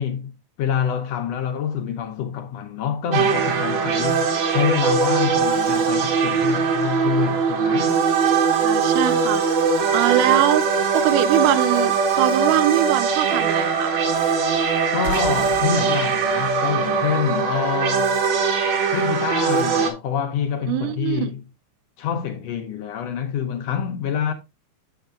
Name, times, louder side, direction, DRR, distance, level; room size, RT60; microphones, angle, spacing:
voice 1, 0.0-8.0 14.9-18.2 18.9-21.4 22.0-24.3, left 8 dB, 70° left, 1.8 m, -26 dB
sound 1, 3.1-19.9, right 5 dB, 60° right, 2.2 m, -21 dB
voice 2, 8.6-10.7 10.9-13.9 20.7-21.3, right 13 dB, 85° right, 2.1 m, -22 dB
sound 2, 15.0-17.8, right 3 dB, 40° right, 1.6 m, -35 dB
8.1 x 7.9 x 2.4 m
omnidirectional pair, 3.6 m